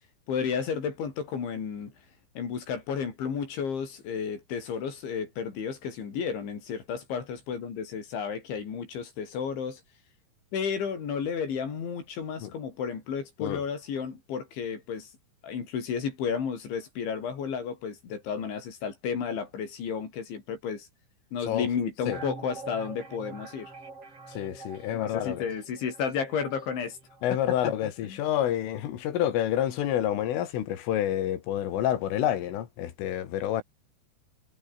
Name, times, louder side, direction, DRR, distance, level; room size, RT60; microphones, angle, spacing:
voice 1, 0.3-1.9 2.4-9.8 10.5-15.1 15.4-20.9 21.3-23.7 24.9-27.0 28.0-28.2, left 6 dB, 70° left, 7.0 m, -32 dB
sound 1, 22.1-27.7 28.0-28.1, right 3 dB, 30° right, 6.5 m, -45 dB
voice 2, 24.3-25.5 27.2-33.6, left 11 dB, 85° left, 5.0 m, -28 dB
omnidirectional pair, 5.6 m